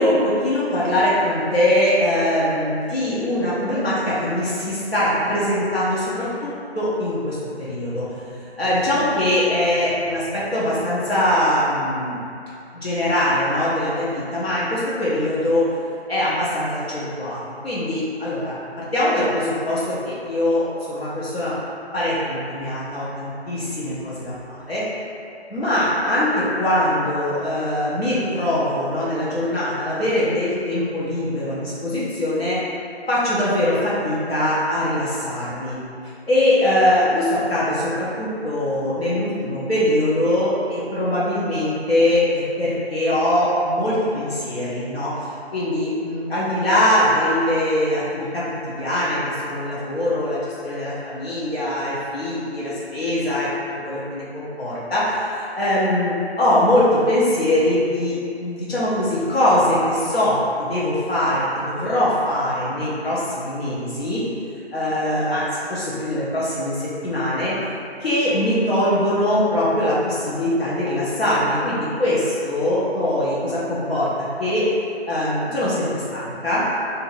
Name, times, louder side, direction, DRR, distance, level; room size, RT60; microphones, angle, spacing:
voice 1, 0.0-8.1 8.4-12.2 12.7-15.7 16.1-21.6 21.9-24.8 25.5-32.6 33.1-35.8 36.3-45.1 45.5-53.5 53.8-64.2 64.7-67.6 68.0-74.7 75.1-76.6, left 1 dB, 65° left, -9 dB, 1.0 m, -22 dB
2.7 x 2.6 x 3.9 m, 2.5 s
figure-of-eight pair, 175°, 33 cm